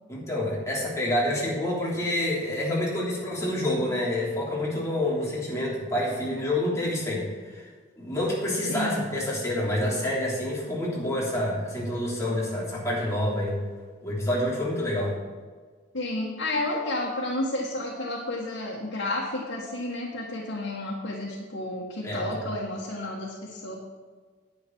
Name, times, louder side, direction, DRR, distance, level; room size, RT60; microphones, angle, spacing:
voice 1, 0.1-7.6 8.0-13.6 14.0-15.1 22.0-22.4, left 1 dB, 15° left, -6 dB, 3.3 m, -28 dB
voice 2, 8.7-9.0 15.9-23.7, left 1 dB, 85° left, -3 dB, 1.6 m, -31 dB
10.5 x 9.0 x 4.6 m, 1.5 s
head